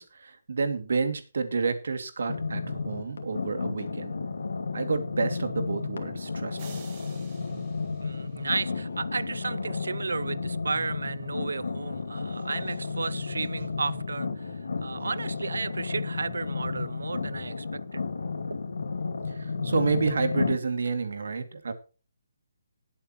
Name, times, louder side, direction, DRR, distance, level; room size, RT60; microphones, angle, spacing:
voice 1, 0.0-4.1 4.7-6.8 19.4-21.7, right 4 dB, 55° right, 2.5 m, -30 dB
sound 1, 2.3-20.6, left 4 dB, 80° left, 2.6 m, -33 dB
sound 2, 6.6-8.9, right 6 dB, 20° right, 2.0 m, -51 dB
voice 2, 8.0-14.3 14.8-18.0, right 4 dB, 85° right, 0.7 m, -33 dB
19.0 x 8.7 x 3.1 m
hypercardioid pair, 175°, 0 cm